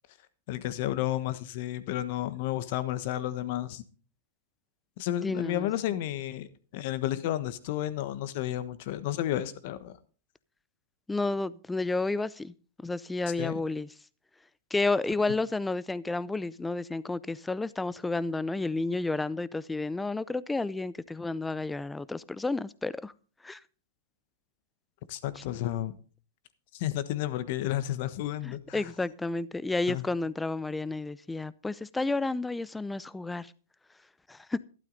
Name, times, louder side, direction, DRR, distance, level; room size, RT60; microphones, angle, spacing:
voice 1, 0.5-3.8 5.0-6.5 6.7-9.9 13.4-13.6 25.1-26.0 26.7-28.8 29.9-30.0, left 13 dB, 55° left, 1.2 m, -32 dB
voice 2, 5.2-5.7 11.1-12.5 12.8-13.9 14.7-23.1 23.4-23.6 28.4-33.5 34.3-34.6, left 3 dB, 10° left, 0.5 m, -31 dB
12.5 x 12.0 x 4.0 m
hypercardioid pair, 130°, 0 cm